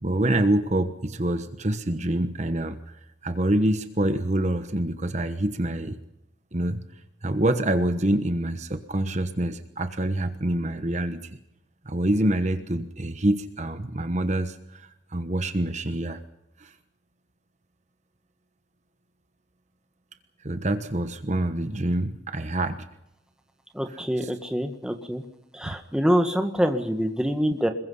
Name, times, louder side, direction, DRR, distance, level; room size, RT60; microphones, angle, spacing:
voice 1, 0.0-3.0 3.2-6.0 6.5-6.8 7.2-11.3 11.8-16.2 16.6-16.7 20.4-22.9 23.9-24.3 25.6-25.8, right 1 dB, 35° right, 9 dB, 1.2 m, -26 dB
voice 2, 23.7-25.2 25.5-27.7, equal, 5° right, 5 dB, 1.7 m, -25 dB
26.5 x 22.0 x 5.6 m, 0.84 s
head